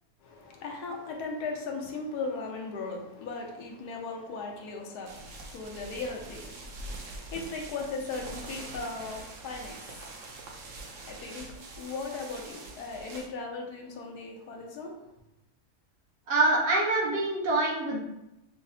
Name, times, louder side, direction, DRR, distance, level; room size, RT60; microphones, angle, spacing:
voice 1, 0.2-15.0, left 3 dB, 80° left, 1 dB, 1.2 m, -38 dB
sound 1, 5.1-13.3, right 2 dB, 65° right, 0.9 m, -44 dB
voice 2, 16.3-18.0, right 2 dB, 90° right, -3 dB, 1.5 m, -25 dB
5.8 x 2.0 x 2.6 m, 0.88 s
omnidirectional pair, 1.7 m